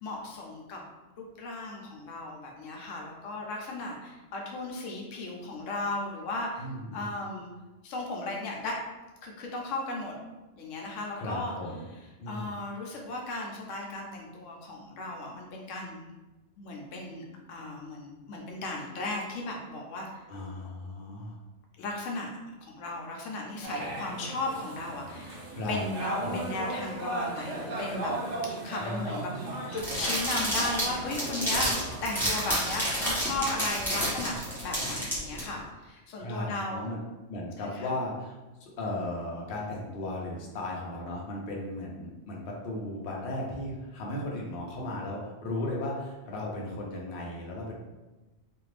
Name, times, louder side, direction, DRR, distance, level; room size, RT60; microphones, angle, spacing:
voice 1, 0.0-0.8 1.2-6.7 6.9-7.5 7.8-8.8 9.2-10.2 10.6-11.5 12.3-16.1 16.6-20.2 21.8-25.4 25.7-28.1 28.6-29.3 29.7-36.9 37.6-37.9, left 2 dB, 80° left, 0 dB, 0.9 m, -36 dB
voice 2, 6.6-7.1 11.2-11.9 12.2-12.6 20.3-21.4 25.5-25.8 26.2-26.4 28.8-29.6 36.2-37.0 37.3-47.7, left 1 dB, 55° left, -2 dB, 0.7 m, -36 dB
sound 1, 23.6-32.0, right 2 dB, 65° right, 1.0 m, -36 dB
sound 2, 29.8-35.4, equal, ahead, 0.9 m, -30 dB
2.5 x 2.4 x 3.2 m, 1.1 s
omnidirectional pair, 1.3 m